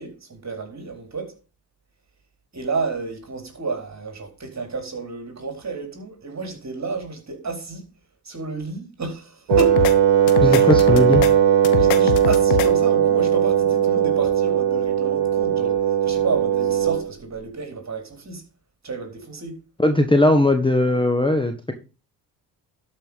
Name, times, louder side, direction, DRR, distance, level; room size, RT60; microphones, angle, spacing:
voice 1, 0.0-1.4 2.5-7.9 8.2-9.9 10.4-10.8 11.7-18.4 18.8-19.6, right 3 dB, 35° right, 4.1 m, -31 dB
sound 1, 9.5-9.9 10.3-11.3 11.6-12.7, left 12 dB, 80° left, 1.3 m, -24 dB
Wind instrument woodwind instrument, 9.5-17.1, right 9 dB, 60° right, 1.7 m, -18 dB
voice 2, 10.4-11.2 19.8-21.7, left 1 dB, 10° left, 1.5 m, -18 dB
12.0 x 5.5 x 5.2 m
hypercardioid pair, 50°, 49 cm